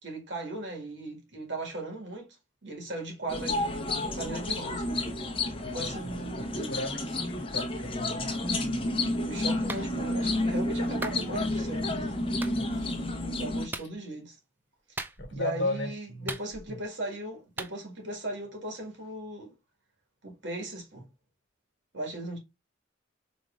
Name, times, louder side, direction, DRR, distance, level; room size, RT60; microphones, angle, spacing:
voice 1, 0.0-2.3 2.6-5.0 5.7-6.8 9.2-12.1 13.4-14.4 14.9-15.0 15.3-19.5 20.2-21.1 21.9-22.4, right 1 dB, 70° right, 1.7 m, -38 dB
sound 1, 3.3-13.7, left 2 dB, 30° left, 0.8 m, -31 dB
voice 2, 5.8-8.9 12.5-13.1 15.2-16.4 16.7-16.8, left 1 dB, 65° left, 1.4 m, -36 dB
Clapping, 9.7-9.9 11.0-11.2 12.4-12.6 13.7-13.9 15.0-15.4 16.3-16.8 17.6-17.7, right 2 dB, 10° right, 0.3 m, -37 dB
5.1 x 3.0 x 2.4 m
head